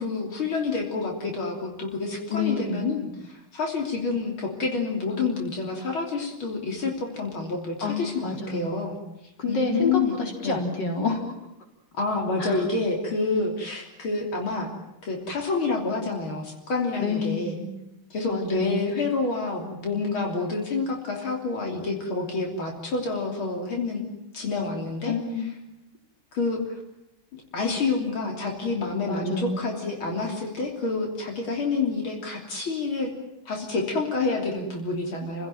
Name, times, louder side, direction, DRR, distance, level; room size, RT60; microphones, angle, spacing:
voice 1, 0.0-9.0 9.5-10.2 10.4-10.6 11.9-17.6 18.1-25.2 26.3-26.8 27.3-33.1 33.5-35.5, left 3 dB, 85° left, 1 dB, 4.1 m, -28 dB
voice 2, 2.3-2.9 7.8-8.7 9.4-11.3 12.4-12.6 17.0-17.7 18.3-18.9 25.1-25.5 29.1-29.6, left 4 dB, 60° left, 1 dB, 4.8 m, -28 dB
30.0 x 17.0 x 9.2 m, 0.86 s
omnidirectional pair, 2.2 m